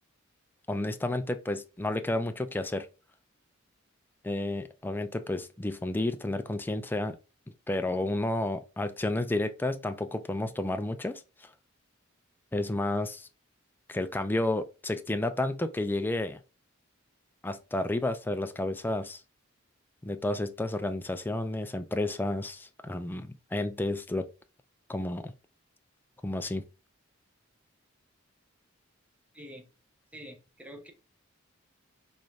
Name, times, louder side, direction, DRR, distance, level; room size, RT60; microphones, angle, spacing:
voice 1, 0.7-2.9 4.2-7.2 7.7-11.2 12.5-13.3 13.9-16.4 17.4-19.2 20.0-24.3 24.9-25.3 26.2-26.6, left 2 dB, 10° left, 0.3 m, -31 dB
voice 2, 29.3-29.7 30.1-30.9, equal, 5° right, 0.8 m, -46 dB
3.9 x 3.1 x 2.3 m
head